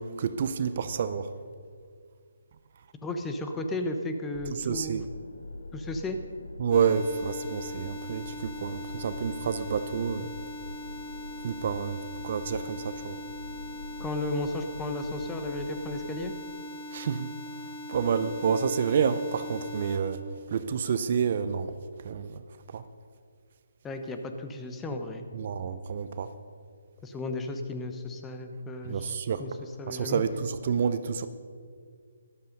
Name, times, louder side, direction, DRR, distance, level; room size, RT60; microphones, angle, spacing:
voice 1, 0.0-1.3 4.5-5.1 6.6-10.3 11.4-12.0 12.2-13.2 16.9-17.3 17.9-21.7 22.0-22.4 22.7-22.8 25.3-26.3 28.8-29.4 29.9-31.3, right 6 dB, 45° right, 12 dB, 0.6 m, -29 dB
voice 2, 3.0-5.0 5.7-6.2 14.0-16.3 23.8-25.3 27.0-29.1 29.4-29.5 29.8-30.2, left 2 dB, 10° left, 5 dB, 1.1 m, -34 dB
sound 1, 4.3-16.3, left 2 dB, 70° left, 1.0 m, -44 dB
sound 2, 6.7-20.0, left 1 dB, 45° left, 2.0 m, -41 dB
13.0 x 12.5 x 5.3 m, 2.1 s
figure-of-eight pair, 145°, 0 cm